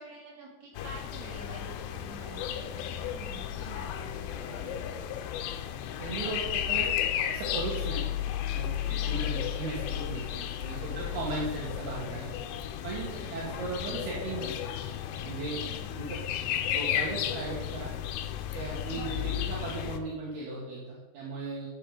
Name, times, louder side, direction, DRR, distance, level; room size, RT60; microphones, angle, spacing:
voice 1, 0.0-5.0 8.8-9.2 10.7-11.0 11.5-11.8 13.0-13.5 15.6-15.9 18.9-19.1, right 3 dB, 40° right, -6 dB, 4.3 m, -47 dB
sound 1, 0.8-20.0, left 10 dB, 80° left, 2.7 m, -33 dB
voice 2, 6.0-6.9 7.3-8.0 8.4-12.3 12.8-14.5 15.2-15.6 15.9-16.2 16.7-17.9 18.5-21.7, right 3 dB, 70° right, -5 dB, 3.3 m, -37 dB
11.0 x 6.6 x 4.9 m, 1.2 s
omnidirectional pair, 5.0 m